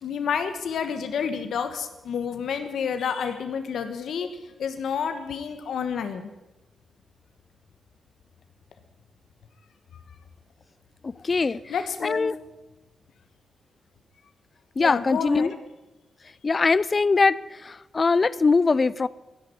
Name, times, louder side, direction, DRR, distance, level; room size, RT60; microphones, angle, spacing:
voice 1, 0.0-4.3 4.6-6.3 11.3-11.4 11.7-12.3 14.8-15.5, left 7 dB, 75° left, 1.3 m, -29 dB
voice 2, 11.3-11.6 12.0-12.3 14.8-15.5 16.4-17.4 17.9-19.1, left 4 dB, 30° left, 0.4 m, -21 dB
13.0 x 10.5 x 9.7 m
wide cardioid pair, 145°, 0 cm